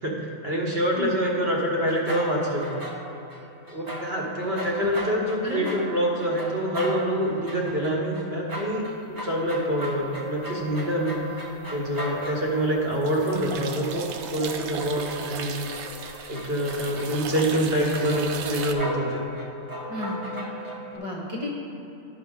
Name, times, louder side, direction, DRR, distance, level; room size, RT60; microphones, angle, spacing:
voice 1, 0.0-2.8 3.7-11.2 11.7-15.7 16.3-19.2, equal, 50° right, -2 dB, 1.2 m, -26 dB
sound 1, 1.8-3.4 3.7-12.7 13.2-17.4 18.1-21.0, right 1 dB, 20° right, 0.7 m, -38 dB
voice 2, 4.5-4.9 5.4-5.7 19.9-20.2 20.9-21.5, left 1 dB, 30° left, -4 dB, 0.7 m, -33 dB
sound 2, 10.6-11.2 11.5-18.7, right 6 dB, 65° right, 0.8 m, -37 dB
11.0 x 5.2 x 3.6 m, 3.0 s
omnidirectional pair, 1.4 m